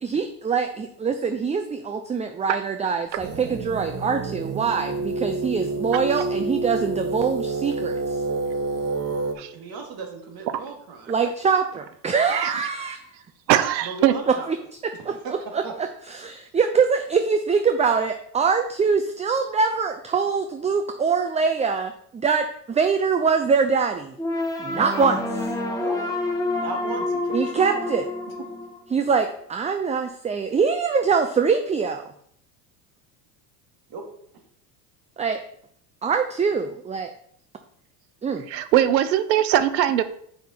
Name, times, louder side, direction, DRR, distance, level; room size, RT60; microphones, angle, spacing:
voice 1, 0.0-8.0 11.1-13.0 14.3-14.6 15.1-15.2 15.5-15.6 16.2-24.1 24.6-25.5 27.3-28.0 28.9-32.1 35.2-35.4 36.0-37.1 38.2-38.5, right 5 dB, 15° right, 7 dB, 0.5 m, -23 dB
sound 1, 3.2-9.3, right 3 dB, 30° right, 1.3 m, -28 dB
voice 2, 9.5-11.2 13.8-14.5 15.2-15.7 25.6-26.0 26.5-27.8 33.9-34.1, right 5 dB, 45° right, 2 dB, 2.5 m, -36 dB
voice 3, 13.5-14.1 38.5-40.0, right 11 dB, 90° right, 12 dB, 0.9 m, -21 dB
sound 2, 24.2-29.2, left 2 dB, 5° left, 1.8 m, -28 dB
7.6 x 5.3 x 4.5 m, 0.66 s
hypercardioid pair, 85°, 49 cm